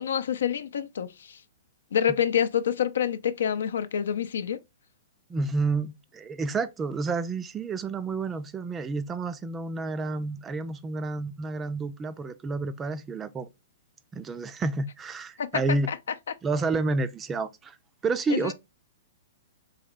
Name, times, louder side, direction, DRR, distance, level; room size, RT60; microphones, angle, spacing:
voice 1, 0.0-1.4 1.9-4.6 15.4-15.6 15.9-16.0 18.3-18.5, left 8 dB, 80° left, 0.5 m, -27 dB
voice 2, 5.3-13.5 14.1-15.9 16.4-17.8 18.0-18.5, right 3 dB, 15° right, 0.4 m, -30 dB
4.1 x 2.9 x 2.4 m
hypercardioid pair, 135°, 0 cm